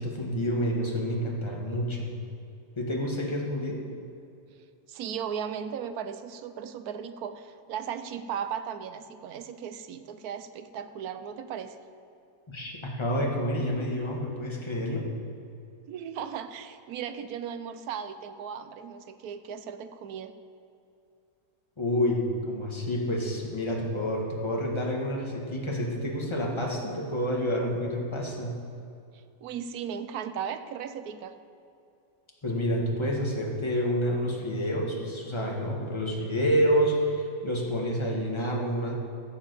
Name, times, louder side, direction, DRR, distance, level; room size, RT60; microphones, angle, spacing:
voice 1, 0.0-2.1 2.8-3.8 12.5-15.0 21.8-28.5 32.4-39.0, equal, 15° left, -1 dB, 1.7 m, -28 dB
voice 2, 4.9-11.8 15.9-20.3 29.4-31.3, right 8 dB, 70° right, 10 dB, 1.1 m, -36 dB
14.5 x 7.1 x 6.9 m, 2.6 s
omnidirectional pair, 1.8 m